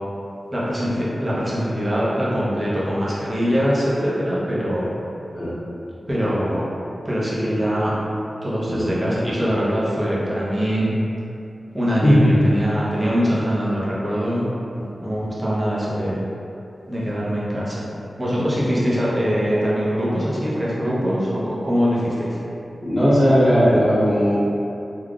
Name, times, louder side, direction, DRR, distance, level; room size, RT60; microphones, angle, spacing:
voice 1, 0.5-4.9 6.1-6.6 7.0-8.0 8.4-10.9 11.7-14.5 14.8-16.2 16.9-17.8 18.2-22.4, equal, 30° right, -8 dB, 0.8 m, -22 dB
voice 2, 8.7-9.1 12.0-12.3 22.8-24.4, equal, 30° left, -12 dB, 0.9 m, -17 dB
3.4 x 2.3 x 2.4 m, 2.7 s
wide cardioid pair, 75°, 0 cm